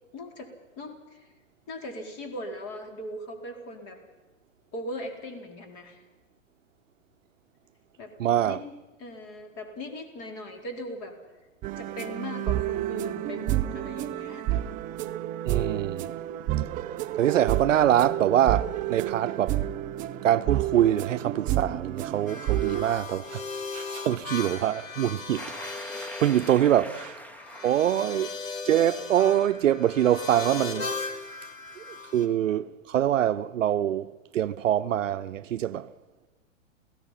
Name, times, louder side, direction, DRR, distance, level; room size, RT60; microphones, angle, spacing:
voice 1, 0.1-1.2 1.7-4.0 4.7-6.0 8.0-8.2 8.4-8.7 9.0-11.1 11.8-14.6, left 1 dB, 35° left, 4.3 m, -39 dB
voice 2, 8.2-8.6 15.4-16.1 17.2-19.6 20.2-23.5 23.7-27.2 27.6-28.3 28.6-30.9 31.8-31.9 32.1-35.9, right 11 dB, 70° right, 0.8 m, -24 dB
sound 1, 11.6-22.8, right 13 dB, 20° right, 0.6 m, -30 dB
sound 2, 22.3-32.3, left 4 dB, 85° left, 2.8 m, -37 dB
sound 3, 25.4-28.3, equal, 5° left, 1.0 m, -43 dB
28.0 x 17.0 x 5.7 m
hypercardioid pair, 120°, 39 cm